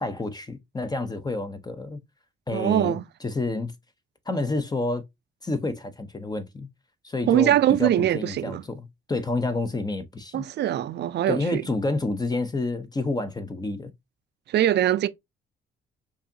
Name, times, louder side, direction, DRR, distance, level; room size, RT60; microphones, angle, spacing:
voice 1, 0.0-2.0 2.5-3.7 4.3-5.0 5.4-6.7 7.0-10.4 11.3-13.9, left 2 dB, 20° left, 0.6 m, -29 dB
voice 2, 2.5-3.0 7.3-8.6 10.3-11.6 14.5-15.1, right 12 dB, 60° right, 0.4 m, -22 dB
4.8 x 2.7 x 2.6 m
cardioid pair, 90°, 20 cm